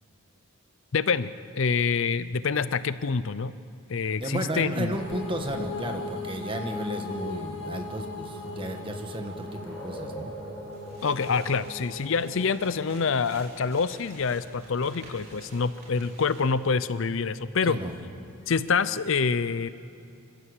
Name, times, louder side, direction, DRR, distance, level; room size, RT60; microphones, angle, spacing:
voice 1, 0.9-1.3 1.6-3.5 3.9-5.0 11.0-17.8 18.5-19.7, left 5 dB, 60° left, 15 dB, 0.5 m, -26 dB
voice 2, 4.2-10.3 17.6-17.9, right 1 dB, 25° right, 4 dB, 1.6 m, -33 dB
sound 1, 4.9-13.6, left 3 dB, 30° left, 3.8 m, -39 dB
sound 2, 7.4-18.5, right 1 dB, 5° left, 6.4 m, -48 dB
sound 3, 10.7-16.7, right 2 dB, 45° right, 4.8 m, -51 dB
27.0 x 14.5 x 8.2 m, 2.5 s
head